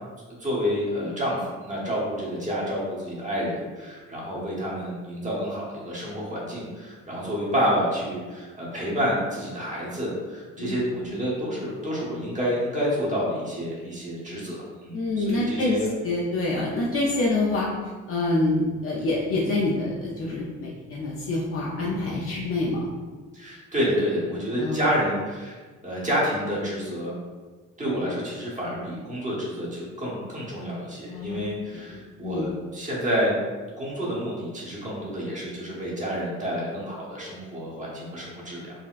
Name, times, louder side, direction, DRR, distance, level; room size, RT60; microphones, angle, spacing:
voice 1, 0.4-15.9 23.3-25.6 25.8-27.2 27.8-33.4 33.8-38.7, equal, 25° right, -5 dB, 1.1 m, -29 dB
voice 2, 10.6-11.1 14.9-15.8 16.0-17.7 18.1-22.9 24.6-24.8 31.1-31.5 32.2-32.5, left 2 dB, 45° left, -4 dB, 0.5 m, -26 dB
4.0 x 2.2 x 2.4 m, 1.4 s
cardioid pair, 90°, 30 cm